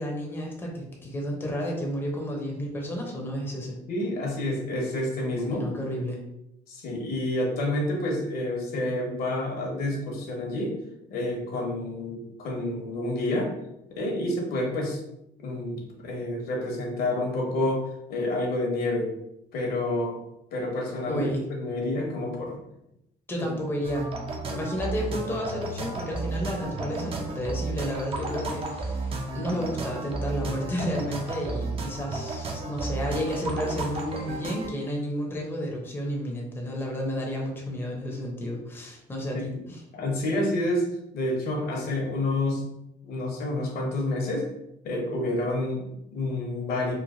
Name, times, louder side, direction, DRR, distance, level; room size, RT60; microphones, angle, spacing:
voice 1, 0.0-3.8 5.5-6.2 21.1-21.4 23.3-24.1 24.5-39.8, equal, 10° left, -1 dB, 0.6 m, -31 dB
voice 2, 3.9-5.7 6.7-10.8 11.1-13.5 13.9-15.0 15.4-19.1 19.5-20.2 20.5-22.6 23.6-23.7 39.3-39.4 39.9-42.7 43.0-44.5 44.8-46.9, left 1 dB, 65° left, 0 dB, 0.8 m, -29 dB
sound 1, 23.8-34.7, right 3 dB, 35° right, 0.5 m, -33 dB
3.1 x 2.1 x 2.5 m, 0.82 s
cardioid pair, 110°, 17 cm